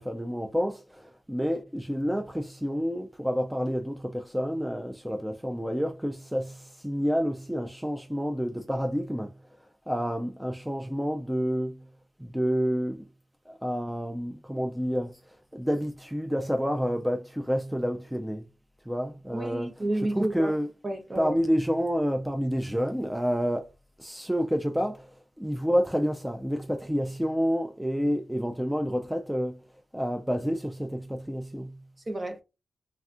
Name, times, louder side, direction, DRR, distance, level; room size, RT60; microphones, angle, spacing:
voice 1, 0.0-9.3 9.9-11.8 12.2-13.0 13.5-15.2 15.5-18.4 18.9-19.7 20.1-20.7 21.2-23.7 24.0-25.1 25.4-29.6 29.9-31.8, equal, 5° right, 0.4 m, -29 dB
voice 2, 19.3-20.5 20.8-21.3 32.1-32.4, right 1 dB, 35° right, 0.8 m, -30 dB
3.3 x 2.3 x 2.5 m
cardioid pair, 65°, 0 cm